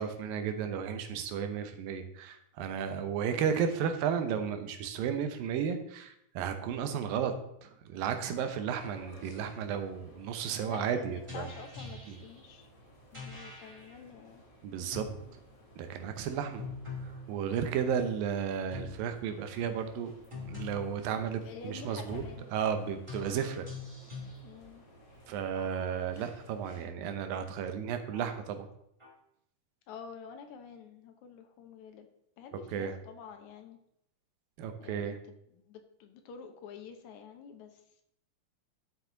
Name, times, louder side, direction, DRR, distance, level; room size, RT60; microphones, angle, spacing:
voice 1, 0.0-7.3 7.6-11.5 12.1-12.2 14.6-15.1 15.8-16.7 17.3-20.1 20.5-22.2 22.5-23.7 25.3-28.7 32.7-32.9 34.6-35.2, right 7 dB, 85° right, 8 dB, 2.7 m, -33 dB
sound 1, 8.7-26.9, equal, 30° left, 2.1 m, -57 dB
voice 2, 10.6-12.7 13.1-14.4 21.2-22.6 24.4-24.8 29.9-32.1 32.4-33.8 34.8-35.2 35.5-38.0, left 6 dB, 65° left, 5 dB, 2.2 m, -48 dB
sound 2, 11.3-12.4 13.1-13.9 14.9-15.3 16.6-17.3 18.7-19.1 20.3-21.1 22.1-22.5 23.1-24.4 25.5-26.2 27.0-27.1 28.1-28.3 29.0-29.1, left 3 dB, 10° right, 1.7 m, -43 dB
11.5 x 7.2 x 3.9 m, 0.76 s
omnidirectional pair, 3.9 m